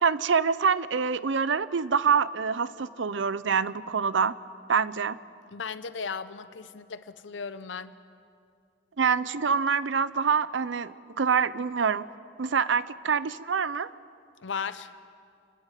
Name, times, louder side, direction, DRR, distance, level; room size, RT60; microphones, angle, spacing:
voice 1, 0.0-4.3 4.7-5.2 9.0-12.0 12.4-13.9, right 6 dB, 90° right, 16 dB, 0.6 m, -26 dB
voice 2, 5.5-7.9 14.4-14.9, left 5 dB, 90° left, 13 dB, 0.7 m, -36 dB
28.5 x 11.0 x 9.2 m, 2.4 s
head